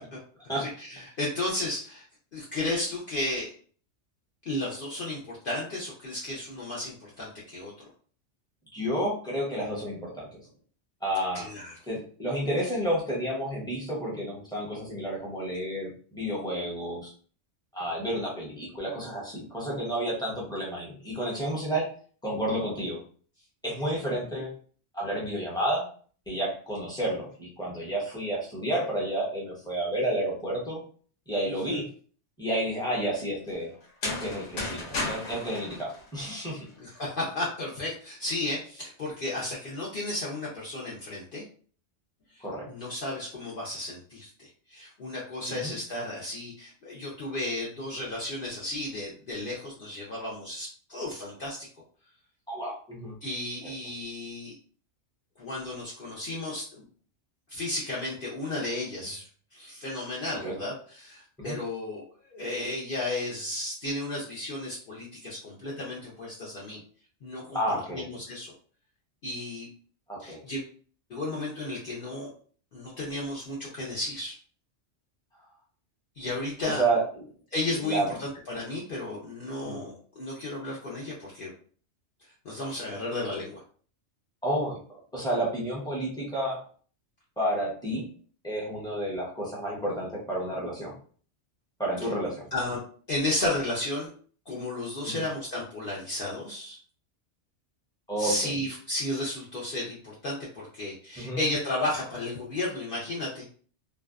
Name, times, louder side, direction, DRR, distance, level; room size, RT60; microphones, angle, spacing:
voice 1, 0.6-2.1 2.3-3.6 4.4-7.7 11.3-11.7 31.7-31.8 36.8-41.4 42.3-51.7 53.2-54.5 55.4-56.9 57.5-66.8 67.2-67.6 67.9-68.5 69.2-69.7 70.2-70.6 71.1-72.3 72.7-74.3 76.2-76.8 77.5-81.5 82.4-83.6 92.5-92.8 93.1-94.1 94.5-96.8 98.2-103.4, left 2 dB, 55° left, -5 dB, 0.7 m, -33 dB
voice 2, 8.7-10.3 11.0-11.5 11.9-17.1 17.7-21.9 22.2-23.0 23.6-24.5 24.9-25.8 26.3-30.8 31.3-31.9 32.4-33.7 34.0-36.6 42.4-42.7 45.5-45.7 52.5-53.1 60.4-60.5 61.4-61.6 67.5-68.0 70.1-70.4 76.6-77.2 77.8-78.1 79.6-79.9 84.4-86.6 87.4-88.0 88.4-90.9 91.8-92.5 95.0-95.2 98.1-98.5 101.2-101.4, right 1 dB, 5° left, -5 dB, 0.6 m, -30 dB
sound 1, 33.8-36.7, left 2 dB, 85° left, 1.0 m, -34 dB
2.5 x 2.2 x 2.3 m, 0.44 s
omnidirectional pair, 1.2 m